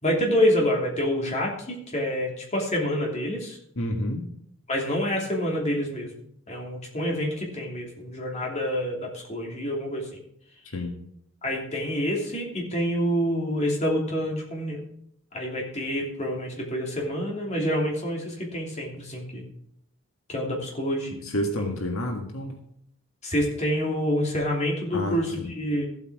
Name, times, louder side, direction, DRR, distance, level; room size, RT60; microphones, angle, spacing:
voice 1, 0.0-3.6 4.7-6.1 6.5-10.1 11.4-14.8 15.3-19.4 20.3-21.2 21.6-21.7 23.2-25.8, equal, 30° left, -2 dB, 2.9 m, -27 dB
voice 2, 3.7-4.3 10.7-11.0 21.2-22.6 24.9-25.6, left 1 dB, 75° left, 3 dB, 1.7 m, -29 dB
14.5 x 8.1 x 4.8 m, 0.72 s
head